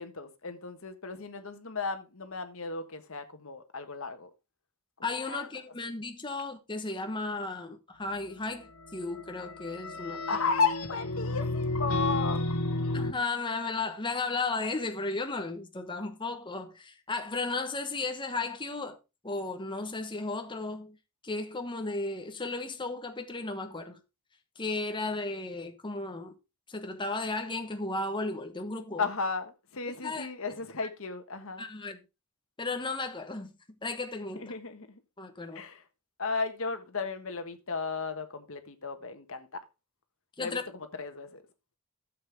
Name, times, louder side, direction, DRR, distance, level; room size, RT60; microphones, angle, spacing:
voice 1, 0.0-4.3 5.3-5.5 10.3-12.4 29.0-31.6 34.3-35.0 35.5-35.8 36.2-39.5 40.4-41.4, left 4 dB, 65° left, 1.5 m, -34 dB
voice 2, 5.0-10.2 12.9-19.0 19.2-21.0 21.2-24.0 24.6-26.3 26.7-29.0 29.9-30.3 31.6-32.0 32.6-33.5 33.8-34.4 35.2-35.6 40.4-40.6, left 3 dB, 20° left, 1.1 m, -34 dB
sound 1, 9.1-13.1, left 2 dB, 85° left, 1.3 m, -32 dB
12.0 x 7.7 x 3.5 m
head